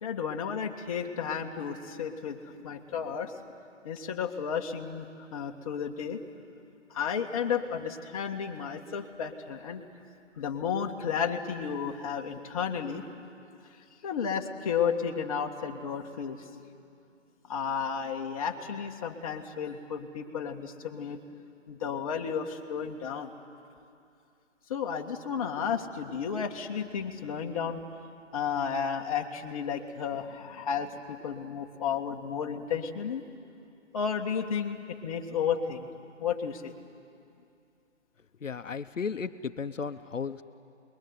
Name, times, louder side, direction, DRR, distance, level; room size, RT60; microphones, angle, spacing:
voice 1, 0.0-3.3 3.8-6.2 6.9-9.8 10.4-13.0 14.0-16.5 17.5-21.2 21.7-23.3 24.7-27.8 28.3-33.2 33.9-35.9 36.2-36.7, left 7 dB, 30° left, 2 dB, 1.7 m, -32 dB
voice 2, 38.4-40.4, left 5 dB, 80° left, 10 dB, 1.2 m, -34 dB
26.5 x 22.0 x 9.7 m, 2.5 s
hypercardioid pair, 160°, 38 cm